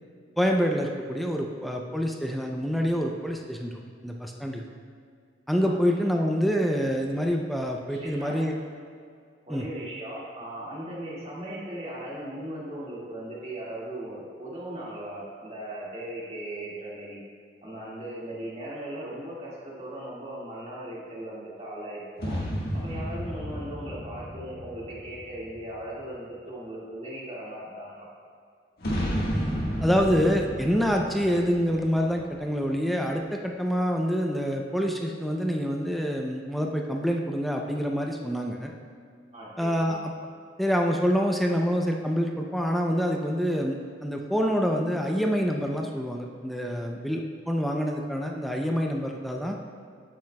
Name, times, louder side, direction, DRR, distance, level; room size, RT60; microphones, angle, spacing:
voice 1, 0.4-3.7 4.0-4.6 5.5-8.6 9.5-9.7 29.8-38.7 39.6-40.0 40.6-47.2 47.5-49.6, equal, ahead, 1 dB, 0.4 m, -26 dB
voice 2, 7.9-8.4 9.5-17.2 17.6-22.4 22.7-28.1 39.3-40.0, right 1 dB, 35° right, -6 dB, 1.9 m, -38 dB
sound 1, 22.2-25.9 28.8-32.6, equal, 55° left, 1.4 m, -32 dB
9.4 x 8.6 x 2.2 m, 2.2 s
head